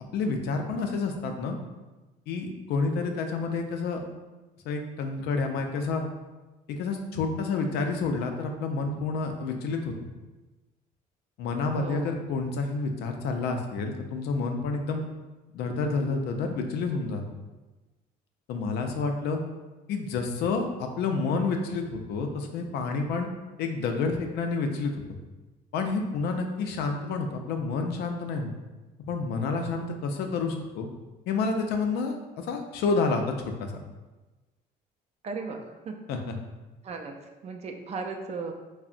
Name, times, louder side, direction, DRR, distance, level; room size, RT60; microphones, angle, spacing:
voice 1, 0.1-1.6 2.3-4.0 4.7-6.0 6.7-9.9 11.4-15.0 15.5-17.2 18.5-19.4 19.9-23.3 23.6-24.9 25.7-28.5 29.1-30.9 31.3-33.2 33.6-33.8 36.1-36.4, left 4 dB, 75° left, 4 dB, 0.4 m, -29 dB
voice 2, 11.7-12.1 35.2-36.0 36.8-37.1 37.4-38.5, right 4 dB, 40° right, 4 dB, 0.4 m, -36 dB
3.5 x 2.0 x 2.4 m, 1.1 s
cardioid pair, 110°, 17 cm